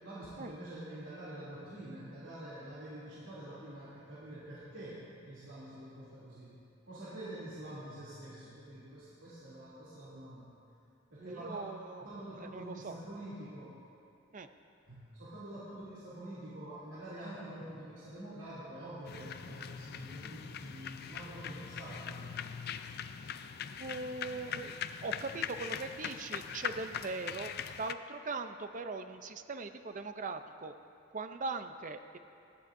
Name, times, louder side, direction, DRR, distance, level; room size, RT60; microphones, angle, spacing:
voice 1, 0.0-6.6 6.9-10.5 11.1-11.6 12.0-13.8 14.9-22.4, right 1 dB, 80° right, -11 dB, 2.8 m, -46 dB
voice 2, 11.2-12.1 12.4-13.0 14.3-14.5 23.8-30.8 31.1-32.2, right 3 dB, 40° right, 9 dB, 0.5 m, -40 dB
sound 1, 19.1-27.9, left 8 dB, 55° left, 0.4 m, -41 dB
18.5 x 13.5 x 2.6 m, 2.7 s
head